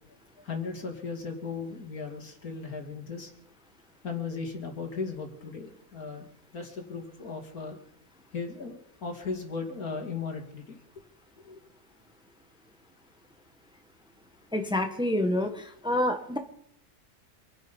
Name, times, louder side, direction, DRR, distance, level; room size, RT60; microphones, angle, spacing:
voice 1, 0.4-3.3 4.0-6.3 6.5-7.8 8.3-8.7 9.0-10.8 11.4-11.6, left 4 dB, 80° left, 3 dB, 3.0 m, -36 dB
voice 2, 14.5-16.4, left 1 dB, 5° right, 5 dB, 1.3 m, -27 dB
26.5 x 9.6 x 5.4 m, 0.71 s
omnidirectional pair, 1.5 m